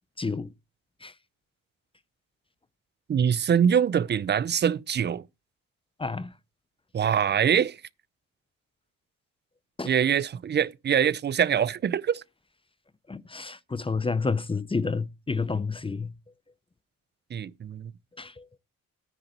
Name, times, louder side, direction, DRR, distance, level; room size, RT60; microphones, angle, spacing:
voice 1, 0.2-0.5 1.0-1.1 6.0-6.3 9.8-9.9 13.1-16.1 18.2-18.4, left 4 dB, 15° left, 0.5 m, -30 dB
voice 2, 3.1-5.2 6.9-7.8 9.8-12.2 17.3-17.9, right 8 dB, 35° right, 0.4 m, -24 dB
9.9 x 3.9 x 6.7 m
cardioid pair, 80°, 33 cm